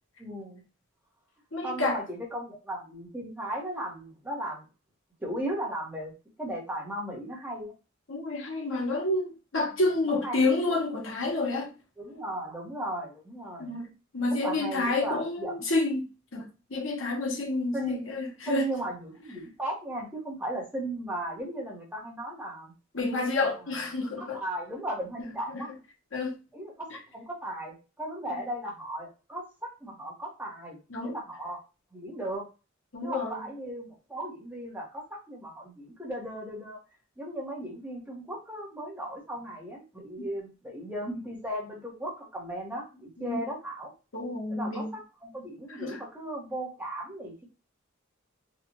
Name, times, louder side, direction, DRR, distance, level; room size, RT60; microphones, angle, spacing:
voice 1, 0.2-0.6 1.6-4.6 5.2-6.1 6.4-7.7 10.2-10.5 12.0-13.7 14.4-15.5 17.7-18.1 18.5-22.7 24.2-25.7 26.5-30.8 31.0-31.6 31.9-32.5 33.0-36.8 37.2-43.9 44.5-47.4, right 1 dB, 10° right, 1.2 m, -36 dB
voice 2, 1.5-2.0 8.1-11.7 13.6-13.9 14.1-16.1 16.3-18.6 22.9-24.4 25.5-25.6 26.1-26.4 28.3-28.4 30.9-31.2 32.9-33.4 40.2-40.3 43.2-43.4 44.1-44.9 45.8-46.0, left 2 dB, 70° left, 1.1 m, -29 dB
4.0 x 2.5 x 3.0 m
head